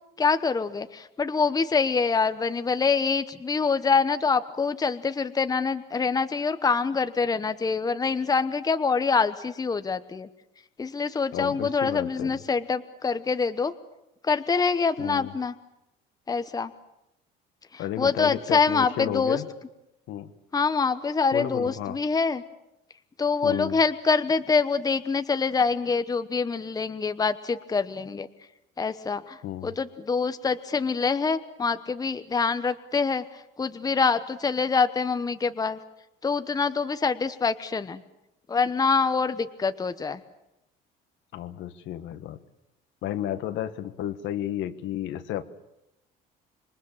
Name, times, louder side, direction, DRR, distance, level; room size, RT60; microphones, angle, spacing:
voice 1, 0.2-10.3 10.8-13.7 14.2-15.5 16.3-16.7 17.7-19.4 20.5-22.4 23.2-28.3 28.8-35.8 36.2-38.0 38.5-40.2, left 5 dB, 20° left, 10 dB, 1.0 m, -25 dB
voice 2, 11.3-12.4 15.0-15.3 17.8-19.4 20.1-20.3 21.3-22.0 23.4-23.8 29.4-29.7 41.3-42.4 43.0-45.4, left 11 dB, 70° left, 10 dB, 1.5 m, -32 dB
26.5 x 21.5 x 7.5 m, 0.88 s
cardioid pair, 120°, 20 cm